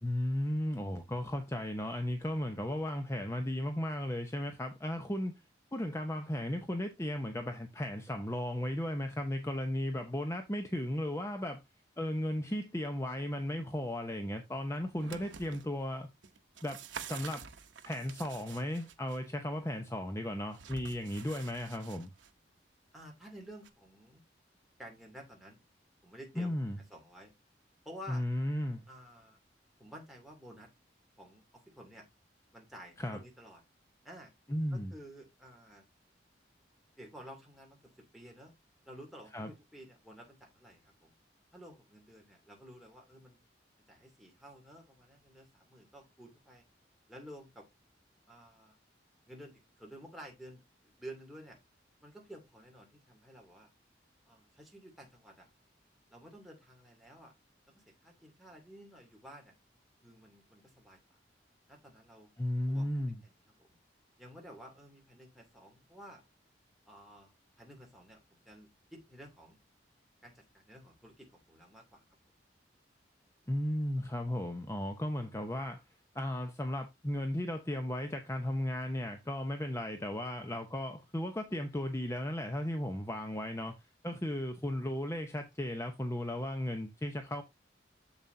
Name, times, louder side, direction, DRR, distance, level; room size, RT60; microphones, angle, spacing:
voice 1, 0.0-5.3 5.7-11.6 12.0-16.1 16.6-17.4 17.8-22.1 26.4-26.8 28.1-28.8 33.0-33.2 34.5-34.9 39.3-39.5 62.4-63.2 73.5-75.8 76.1-83.7 84.0-87.4, left 1 dB, 15° left, 0.8 m, -35 dB
sound 1, 14.8-15.7 16.2-19.2 20.5-22.3 23.6-23.7, right 7 dB, 90° right, 0.9 m, -48 dB
voice 2, 22.9-24.2 24.8-25.6 26.0-26.6 26.9-27.3 27.8-28.2 28.9-29.4 29.8-30.7 31.2-32.1 32.5-33.6 34.0-34.3 34.7-35.8 37.0-38.5 38.8-41.1 41.5-43.4 43.9-46.6 47.1-47.7 48.3-48.8 49.3-50.6 51.0-51.6 52.0-53.7 54.2-55.5 56.1-57.3 57.7-59.5 60.0-61.0 61.7-62.3 62.7-62.9 63.6-63.8 64.2-66.2 66.9-69.6 70.2-72.0, equal, ahead, 2.7 m, -52 dB
7.3 x 7.2 x 2.7 m
head